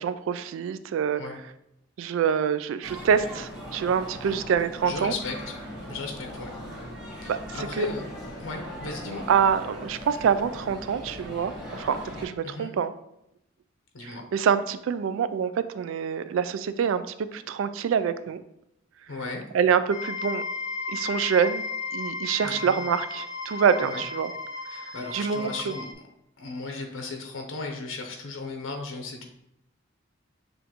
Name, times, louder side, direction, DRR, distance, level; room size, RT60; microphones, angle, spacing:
voice 1, 0.0-1.2 2.0-5.1 7.3-7.9 9.3-12.9 14.0-18.4 19.5-20.4 20.9-21.6 21.9-24.3 25.1-25.7, right 7 dB, 85° right, 13 dB, 0.3 m, -26 dB
sound 1, 2.8-12.3, equal, 5° right, 1.4 m, -39 dB
voice 2, 4.8-5.4 5.9-6.5 7.2-8.0 8.4-9.2 12.4-12.7 13.9-14.2 19.1-19.4 22.4-22.8 23.8-24.0 24.7-25.8 26.4-29.2, left 3 dB, 90° left, 3 dB, 0.7 m, -36 dB
sound 2, 19.9-25.9, left 4 dB, 15° left, 0.8 m, -34 dB
6.9 x 2.5 x 2.9 m, 0.81 s
head